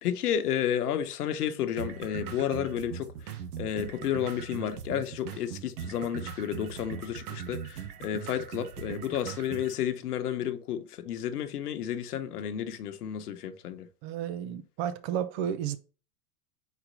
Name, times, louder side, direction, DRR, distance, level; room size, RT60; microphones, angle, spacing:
voice 1, 0.0-3.1 3.6-13.9, left 9 dB, 80° left, 1.0 m, -31 dB
sound 1, 1.8-9.8, right 8 dB, 75° right, 1.2 m, -40 dB
voice 2, 14.0-15.8, right 9 dB, 45° right, 0.7 m, -32 dB
4.4 x 4.2 x 5.3 m
hypercardioid pair, 125°, 45 cm